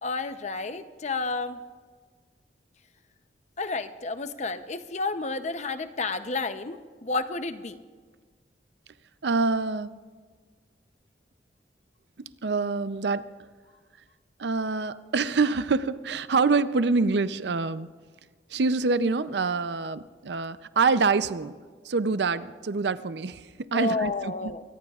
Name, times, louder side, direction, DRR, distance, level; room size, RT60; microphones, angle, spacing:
voice 1, 0.0-1.6 3.6-7.8 23.7-24.6, left 3 dB, 40° left, 0.7 m, -31 dB
voice 2, 9.2-9.9 12.2-13.3 14.4-17.9 18.5-21.5 21.8-24.5, right 4 dB, 70° right, 0.5 m, -26 dB
24.5 x 19.0 x 2.4 m
head